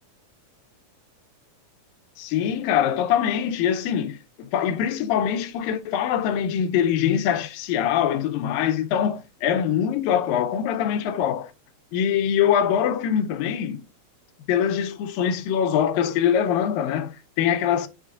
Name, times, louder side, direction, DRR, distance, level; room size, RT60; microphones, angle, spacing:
voice 1, 2.2-11.5 11.9-13.8 14.5-17.9, left 9 dB, 85° left, 2.5 m, -23 dB
8.8 x 4.2 x 3.8 m
omnidirectional pair, 3.9 m